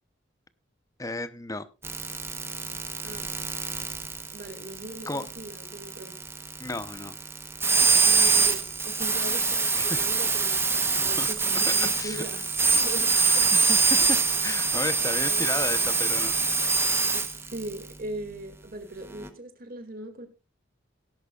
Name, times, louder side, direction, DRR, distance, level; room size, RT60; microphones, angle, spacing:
voice 1, 1.0-1.7 5.1-5.3 6.6-7.2 9.8-10.1 11.0-11.3 11.8-12.2 13.1-14.2 14.4-16.3, left 2 dB, 15° left, 12 dB, 0.8 m, -33 dB
sound 1, 1.8-17.7 19.2-19.3, right 4 dB, 10° right, 1.0 m, -25 dB
voice 2, 4.3-6.2 8.0-13.5 14.0-14.1 15.3-15.8 17.1-20.3, right 1 dB, 50° right, 6 dB, 2.4 m, -40 dB
18.0 x 11.0 x 2.4 m, 0.29 s
head